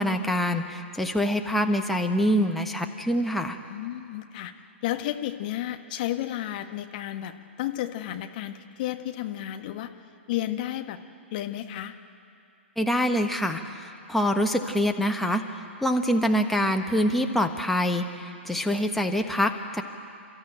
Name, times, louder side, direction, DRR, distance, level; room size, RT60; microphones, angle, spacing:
voice 1, 0.0-3.6 12.8-15.4 15.8-19.8, equal, ahead, 3 dB, 1.3 m, -25 dB
voice 2, 3.7-4.5 4.8-9.9 10.3-11.0 11.3-12.0, left 13 dB, 40° left, 7 dB, 1.4 m, -32 dB
29.5 x 13.5 x 9.1 m, 2.6 s
figure-of-eight pair, 115°, 7 cm